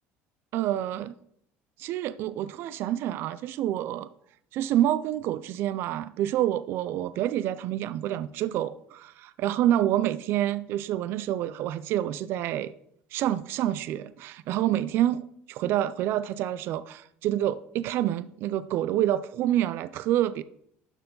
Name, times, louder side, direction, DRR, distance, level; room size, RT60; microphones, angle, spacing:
voice 1, 0.5-1.2 1.8-4.1 4.5-12.7 13.1-15.2 15.5-20.4, right 12 dB, 55° right, 0.3 m, -27 dB
12.0 x 4.6 x 3.8 m
cardioid pair, 145°, 5 cm